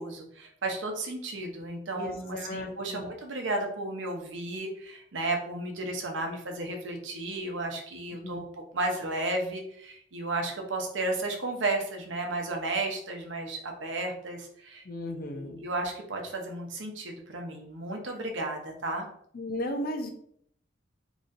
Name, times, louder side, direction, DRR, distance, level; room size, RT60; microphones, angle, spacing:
voice 1, 0.0-8.4 8.7-14.8 15.3-19.1, right 2 dB, 80° right, 2 dB, 0.8 m, -33 dB
voice 2, 1.9-3.0 8.2-8.5 14.8-15.6 19.3-20.1, left 1 dB, 50° left, 4 dB, 0.5 m, -35 dB
3.8 x 3.0 x 2.6 m, 0.66 s
head